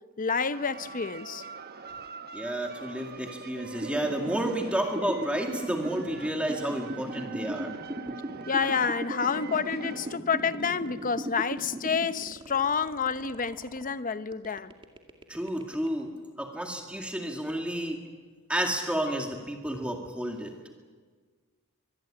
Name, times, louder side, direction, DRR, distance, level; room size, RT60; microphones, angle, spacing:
voice 1, 0.2-1.4 8.5-14.7, left 5 dB, 40° left, 0.8 m, -29 dB
sound 1, 0.5-10.2, right 5 dB, 45° right, 1.1 m, -44 dB
voice 2, 2.3-7.7 8.1-8.2 15.3-18.0 18.5-20.5, right 1 dB, 5° right, 2.1 m, -31 dB
sound 2, 3.8-13.9 14.3-16.0, right 1 dB, 25° right, 2.3 m, -37 dB
24.5 x 21.5 x 8.8 m
head